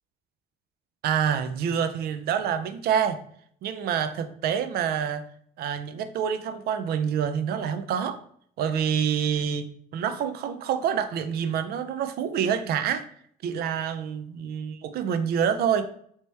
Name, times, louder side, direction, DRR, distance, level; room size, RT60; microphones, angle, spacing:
voice 1, 1.0-3.2 3.6-5.2 5.6-8.2 8.6-13.0 13.4-15.9, right 8 dB, 65° right, 11 dB, 0.5 m, -27 dB
4.4 x 2.9 x 3.3 m, 0.63 s
cardioid pair, 110°, 17 cm